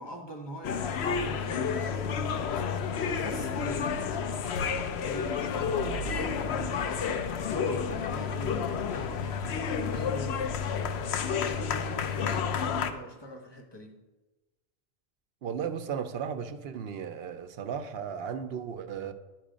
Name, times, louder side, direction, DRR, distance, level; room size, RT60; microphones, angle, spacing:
voice 1, 0.0-2.8 3.2-10.6 10.8-14.0, equal, 25° left, 1.0 m, -43 dB
sound 1, 0.6-12.9, left 6 dB, 80° left, 0.9 m, -30 dB
voice 2, 15.4-19.1, right 7 dB, 75° right, 0.8 m, -35 dB
10.5 x 4.7 x 5.0 m
omnidirectional pair, 1.1 m